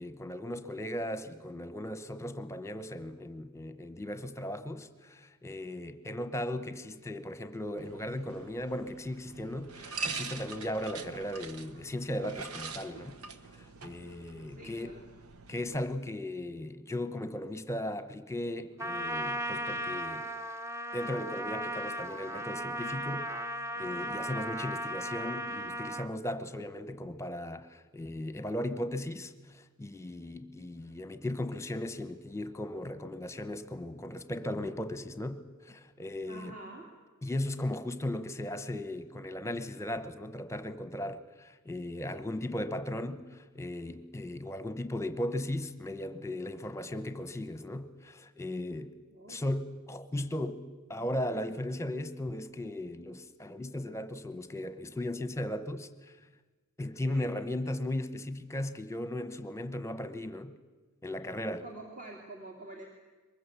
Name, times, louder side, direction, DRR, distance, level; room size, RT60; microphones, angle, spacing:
voice 1, 0.0-13.1 13.8-14.9 15.5-20.5 20.9-23.3 23.8-36.6 37.2-48.9 49.3-50.6 50.9-55.9 56.8-60.6 61.0-61.7, left 1 dB, 15° left, 1.1 m, -37 dB
sound 1, 7.8-15.8, right 4 dB, 85° right, 1.3 m, -43 dB
voice 2, 14.5-15.0 36.3-36.9 49.1-49.4 57.0-57.3 61.6-62.9, right 2 dB, 35° right, 2.9 m, -47 dB
Trumpet, 18.8-26.1, right 1 dB, 10° right, 0.9 m, -36 dB
23.5 x 20.5 x 8.4 m
head